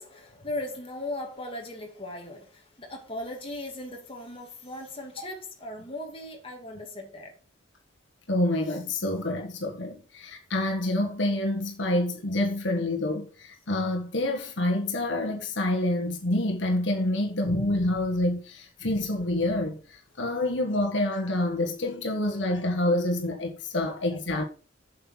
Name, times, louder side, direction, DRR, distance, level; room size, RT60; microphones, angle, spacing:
voice 1, 0.0-7.3, left 1 dB, 30° left, 2.6 m, -38 dB
voice 2, 8.3-24.4, left 1 dB, 75° left, 1.6 m, -27 dB
7.9 x 6.8 x 5.7 m
head